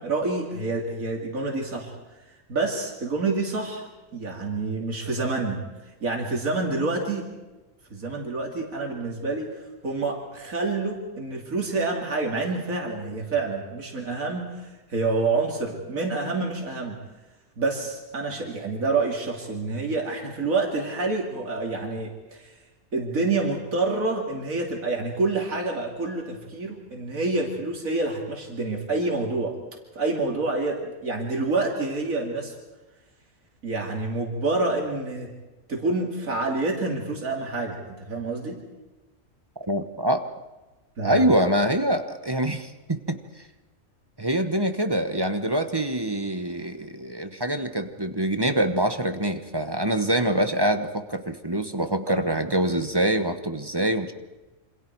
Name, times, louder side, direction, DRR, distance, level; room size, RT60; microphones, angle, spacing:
voice 1, 0.0-1.9 2.5-5.6 6.0-7.2 7.9-9.5 9.8-17.0 17.6-22.5 22.9-29.5 29.9-32.5 33.6-35.3 35.7-38.6 41.0-41.2 52.1-52.2, right 3 dB, 90° right, 0 dB, 3.1 m, -27 dB
voice 2, 39.7-40.2 41.0-43.2 44.2-54.1, right 1 dB, 20° right, 8 dB, 1.1 m, -25 dB
28.0 x 26.0 x 4.7 m, 1.1 s
omnidirectional pair, 1.4 m